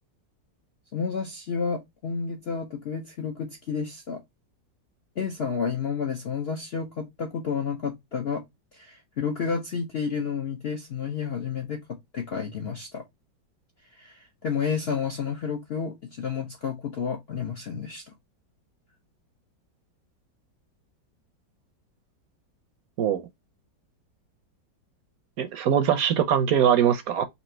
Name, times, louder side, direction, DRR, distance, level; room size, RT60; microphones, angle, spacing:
voice 1, 0.9-4.2 5.2-8.4 8.7-13.0 13.9-18.1, left 6 dB, 75° left, 0.5 m, -31 dB
voice 2, 25.4-27.2, right 9 dB, 70° right, 0.9 m, -22 dB
4.1 x 2.7 x 4.3 m
omnidirectional pair, 1.9 m